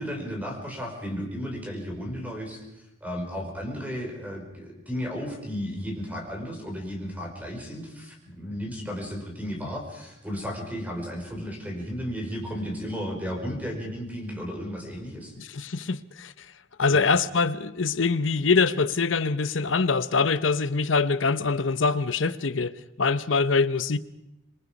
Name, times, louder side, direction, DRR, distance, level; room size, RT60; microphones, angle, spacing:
voice 1, 0.0-2.6 3.0-15.3 16.9-17.0, equal, 10° right, 5.6 m, -34 dB
voice 2, 15.4-16.5 16.8-24.0, left 4 dB, 70° left, 0.9 m, -24 dB
27.0 x 23.0 x 5.4 m
head